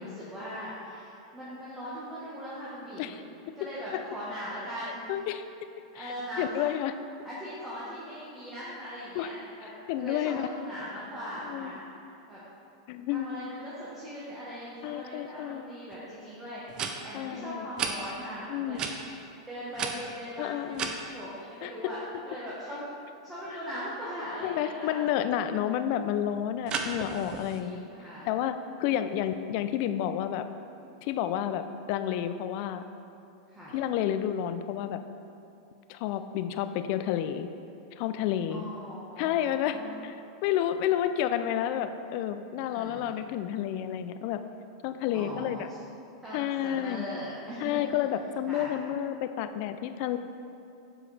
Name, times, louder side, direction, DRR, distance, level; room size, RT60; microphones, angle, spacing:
voice 1, 0.0-3.2 3.5-5.0 5.9-6.6 7.2-9.7 10.0-11.8 12.3-12.4 13.1-22.9 23.2-25.1 27.2-28.3 28.8-29.0 33.5-33.8 38.5-39.9 42.7-43.2 45.1-45.8 46.2-47.8 48.5-48.7, equal, 10° right, -10 dB, 1.2 m, -40 dB
voice 2, 4.8-5.4 6.0-6.9 9.1-9.3 9.9-10.5 11.5-11.7 12.9-13.4 14.8-15.7 17.1-17.7 18.5-18.8 20.4-20.9 21.6-21.7 24.4-27.9 28.2-30.5 31.0-32.8 33.7-35.0 35.9-37.5 37.9-38.6 39.2-39.8 40.0-40.2 40.4-44.4 44.8-45.7 46.3-47.1 47.6-50.2, left 10 dB, 55° left, 10 dB, 0.3 m, -30 dB
sound 1, 15.9-16.0 16.7-16.9 17.8-17.9 18.7-18.9 19.7-21.0 26.7-27.6, right 6 dB, 30° right, 0.5 m, -33 dB
7.1 x 4.8 x 3.3 m, 2.6 s
hypercardioid pair, 120°, 2 cm